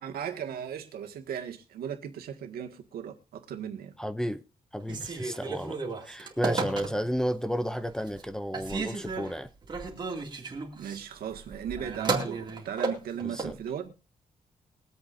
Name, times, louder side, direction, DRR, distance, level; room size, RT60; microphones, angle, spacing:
voice 1, 0.0-3.9 10.7-13.9, right 8 dB, 90° right, 1.8 m, -37 dB
voice 2, 4.0-4.4 4.7-5.8 6.0-9.5 13.2-13.5, equal, 5° left, 0.5 m, -32 dB
Telephone, 4.8-7.3 7.8-8.3 8.5-13.6, right 4 dB, 30° right, 2.3 m, -34 dB
22.5 x 8.2 x 2.6 m
wide cardioid pair, 165°, 15 cm